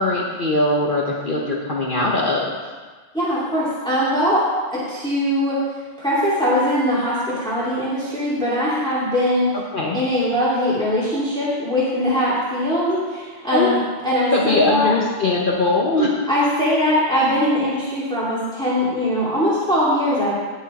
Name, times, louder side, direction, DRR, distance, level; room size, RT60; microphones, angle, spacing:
voice 1, 0.0-2.5 9.7-10.0 13.5-13.7 14.1-16.1, left 2 dB, 45° left, -3 dB, 1.2 m, -20 dB
voice 2, 3.1-4.5 4.7-5.6 6.0-9.5 9.9-13.8 14.0-14.9 16.3-20.3, equal, 5° left, -9 dB, 2.3 m, -21 dB
18.0 x 6.4 x 4.2 m, 1.4 s
omnidirectional pair, 1.2 m